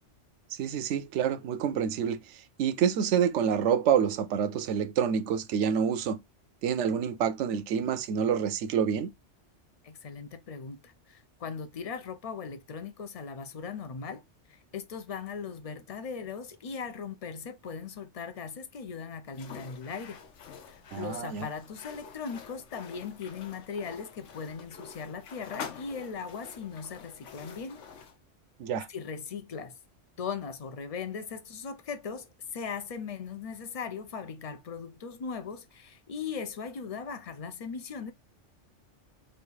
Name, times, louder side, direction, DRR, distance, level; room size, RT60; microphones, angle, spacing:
voice 1, 0.6-2.2 2.6-6.2 6.6-9.1 20.9-21.5 28.6-28.9, right 8 dB, 80° right, 0.9 m, -27 dB
voice 2, 9.8-20.2 20.7-27.8 28.9-29.8 30.2-38.1, left 6 dB, 55° left, 0.4 m, -39 dB
sound 1, 19.3-28.2, left 7 dB, 85° left, 1.1 m, -47 dB
3.3 x 2.6 x 4.5 m
omnidirectional pair, 1.2 m